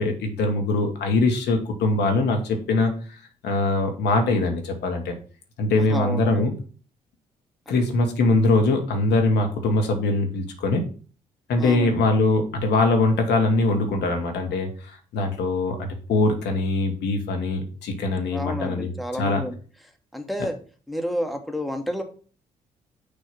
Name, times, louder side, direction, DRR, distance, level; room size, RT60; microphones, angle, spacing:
voice 1, 0.0-3.0 3.4-5.1 5.6-6.5 7.7-10.8 11.5-14.7 15.1-18.9 19.2-19.4, left 2 dB, 65° left, 4 dB, 1.2 m, -22 dB
voice 2, 5.7-6.5 7.7-7.8 11.6-12.1 18.3-19.6 20.1-20.6 20.9-22.0, left 1 dB, ahead, 5 dB, 1.3 m, -30 dB
6.5 x 2.8 x 5.7 m, 0.40 s
hypercardioid pair, 45°, 18 cm